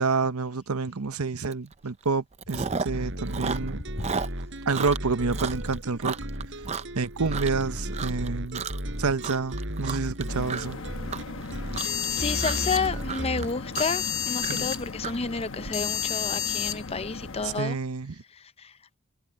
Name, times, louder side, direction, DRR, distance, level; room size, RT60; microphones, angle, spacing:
voice 1, 0.0-3.8 4.7-6.1 6.9-8.7 9.0-10.8 14.5-14.7 17.4-18.2, right 4 dB, 80° right, 0.9 m, -28 dB
Chewing mastication, 1.5-1.7 2.0-3.0 3.3-7.6 7.9-8.3 8.5-8.9 9.2-15.7, right 5 dB, 30° right, 0.5 m, -33 dB
sound 1, 2.9-13.5, equal, 55° right, 7.2 m, -35 dB
sound 2, 10.3-17.6, left 7 dB, 55° left, 1.1 m, -32 dB
voice 2, 12.1-17.8, left 4 dB, 25° left, 0.6 m, -30 dB
head